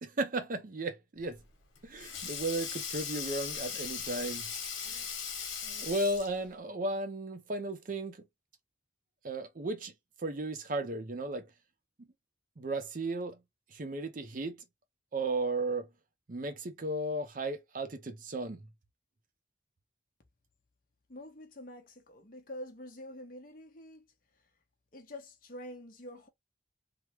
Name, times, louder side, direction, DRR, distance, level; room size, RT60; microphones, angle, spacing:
voice 1, 0.0-1.4 1.8-4.4 4.8-5.1 5.6-8.3 9.2-9.9 10.2-11.5 12.6-13.4 13.7-14.6 15.1-15.9 16.3-18.6, right 2 dB, 45° right, 0.5 m, -35 dB
Sink (filling or washing), 1.3-6.5, left 7 dB, 75° left, 1.2 m, -39 dB
voice 2, 21.1-24.1 24.3-24.5 24.9-26.3, left 1 dB, 45° left, 0.8 m, -47 dB
3.3 x 2.1 x 2.9 m
head